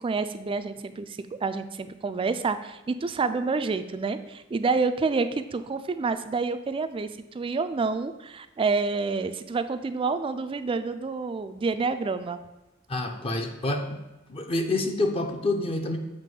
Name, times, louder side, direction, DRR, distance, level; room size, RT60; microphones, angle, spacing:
voice 1, 0.0-12.4, right 4 dB, 25° right, 11 dB, 0.3 m, -28 dB
voice 2, 12.9-14.0 14.3-16.0, left 2 dB, 30° left, 4 dB, 0.5 m, -27 dB
7.5 x 3.0 x 5.3 m, 1.0 s
head